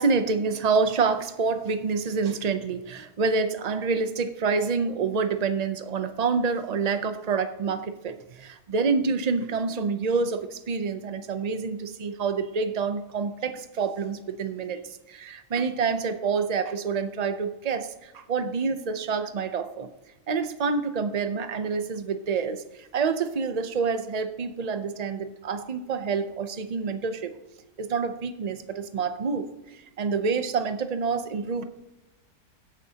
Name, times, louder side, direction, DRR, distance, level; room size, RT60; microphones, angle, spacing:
voice 1, 0.0-14.8 15.1-19.9 20.3-27.3 27.8-29.5 30.0-31.6, right 5 dB, 70° right, 9 dB, 0.3 m, -27 dB
16.5 x 9.1 x 2.8 m, 1.0 s
omnidirectional pair, 1.7 m